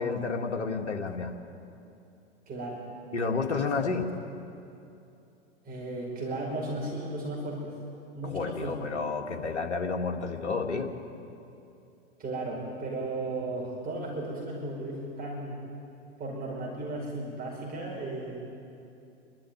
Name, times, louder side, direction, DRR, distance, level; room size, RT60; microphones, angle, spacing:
voice 1, 0.0-1.3 3.1-4.1 8.2-10.9, left 4 dB, 70° left, 3 dB, 2.2 m, -30 dB
voice 2, 2.5-2.8 3.7-3.8 5.6-7.7 8.1-8.9 12.2-15.6 16.2-18.4, right 2 dB, 25° right, -3 dB, 5.3 m, -35 dB
27.5 x 12.5 x 9.4 m, 2.7 s
figure-of-eight pair, 95°, 36 cm